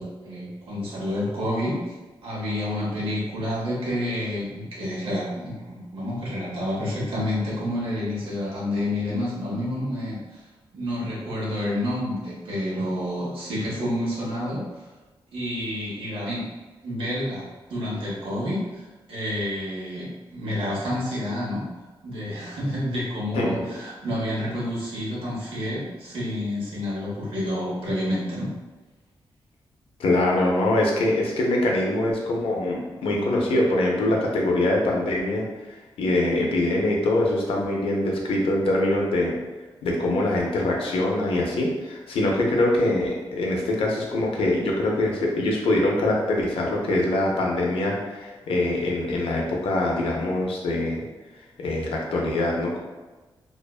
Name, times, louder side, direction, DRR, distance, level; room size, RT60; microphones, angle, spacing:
voice 1, 0.0-1.8 2.2-10.4 10.7-14.8 15.3-16.4 16.8-21.6 22.0-28.5, left 1 dB, 75° right, -6 dB, 1.0 m, -29 dB
voice 2, 23.3-23.7 30.0-39.4 39.8-51.0 51.6-52.8, left 1 dB, 85° left, -1 dB, 0.5 m, -23 dB
2.5 x 2.1 x 2.3 m, 1.2 s
cardioid pair, 70°, 9 cm